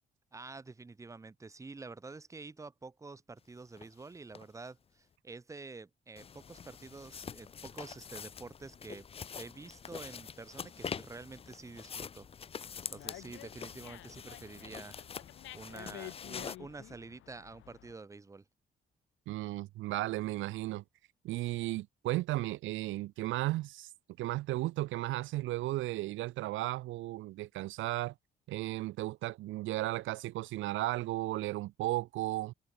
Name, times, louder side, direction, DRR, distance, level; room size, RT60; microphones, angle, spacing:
voice 1, 0.3-9.1 9.3-12.3 12.9-14.9 15.5-18.4, right 3 dB, 15° right, 0.7 m, -48 dB
sound 1, 3.8-3.9 4.4-4.5 6.2-16.6, left 7 dB, 30° left, 0.4 m, -45 dB
Dog, 12.6-17.9, left 15 dB, 90° left, 3.1 m, -51 dB
voice 2, 19.3-20.8 21.2-23.9 24.2-28.1 28.5-32.5, right 17 dB, 75° right, 0.4 m, -35 dB
cardioid pair, 90°, 20 cm